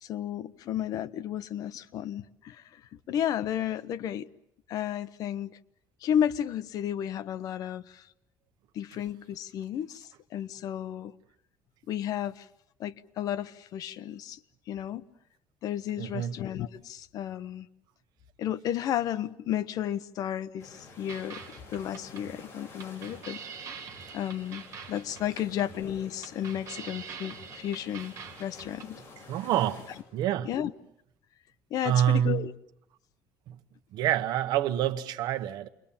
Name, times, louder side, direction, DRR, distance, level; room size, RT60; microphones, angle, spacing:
voice 1, 0.0-2.8 3.1-4.3 4.7-5.6 6.0-8.0 8.7-11.1 11.9-12.5 12.8-14.4 14.7-15.0 15.6-17.7 18.4-21.4 21.7-23.4 24.1-28.1 28.4-29.0 30.4-30.7 31.7-32.5, left 10 dB, 55° left, 0.9 m, -33 dB
voice 2, 16.0-16.4 29.3-29.9 30.1-30.5 31.8-32.4 33.5-33.6 33.9-35.7, right 11 dB, 65° right, 1.2 m, -27 dB
sound 1, 20.6-30.0, left 3 dB, 30° left, 6.4 m, -51 dB
sound 2, 21.1-28.9, right 7 dB, 40° right, 3.6 m, -45 dB
29.0 x 22.5 x 7.2 m
cardioid pair, 160°, 8 cm